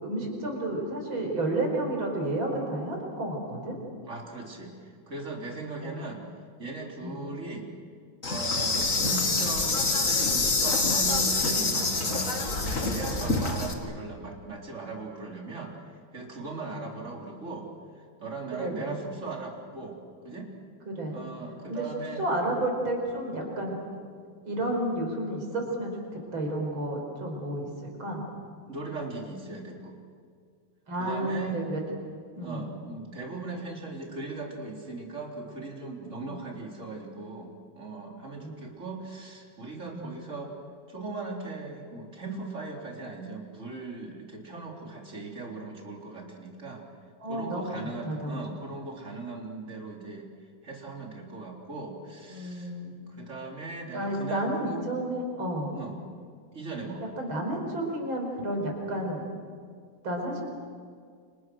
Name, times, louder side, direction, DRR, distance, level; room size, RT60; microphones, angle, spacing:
voice 1, 0.0-3.8 5.8-6.0 7.0-7.1 9.2-9.3 13.2-13.3 18.6-19.0 20.9-21.2 21.7-21.9 22.2-23.8 24.4-28.3 30.9-31.8 32.4-32.7 36.2-36.4 38.4-38.5 39.9-40.1 47.2-47.8 48.0-48.4 48.7-48.8 52.3-53.0 53.9-55.8 57.2-59.2 60.0-60.4, right 1 dB, 85° right, 1 dB, 6.0 m, -31 dB
voice 2, 4.0-6.3 6.6-7.7 8.3-15.7 16.1-17.7 18.0-20.5 21.1-22.3 24.6-24.8 28.6-30.0 31.0-31.6 32.4-40.6 40.9-46.9 47.2-50.3 50.6-52.7 53.1-54.5 55.7-56.0 56.5-57.0, right 3 dB, 35° right, -1 dB, 4.0 m, -38 dB
Insect, 8.2-13.7, left 3 dB, 40° left, 2.6 m, -26 dB
29.5 x 26.5 x 6.3 m, 2.1 s
omnidirectional pair, 2.2 m